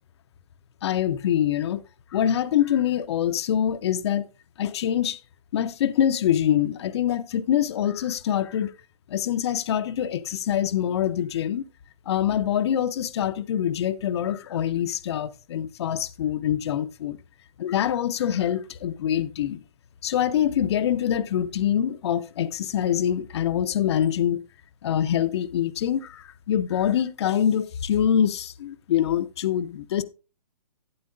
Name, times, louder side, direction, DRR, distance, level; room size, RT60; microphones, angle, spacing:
voice 1, 0.8-1.8 2.1-4.3 4.6-5.2 5.5-8.7 9.1-11.6 12.1-17.2 17.6-19.6 20.0-24.4 24.8-30.0, left 10 dB, 40° left, 0.6 m, -25 dB
11.5 x 9.4 x 2.5 m
figure-of-eight pair, 135°, 21 cm